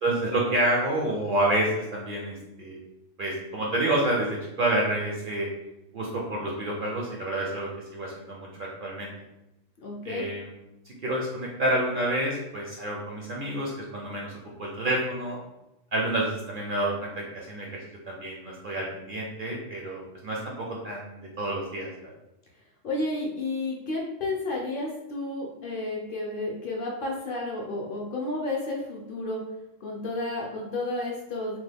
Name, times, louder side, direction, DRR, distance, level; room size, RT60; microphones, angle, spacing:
voice 1, 0.0-2.8 3.2-5.5 5.9-9.1 10.0-10.5 10.9-15.4 15.9-22.1, right 1 dB, 60° right, -2 dB, 0.5 m, -29 dB
voice 2, 9.8-10.2 22.8-29.4 29.8-31.6, left 2 dB, 55° left, -1 dB, 0.6 m, -31 dB
2.9 x 2.2 x 3.3 m, 0.93 s
omnidirectional pair, 1.3 m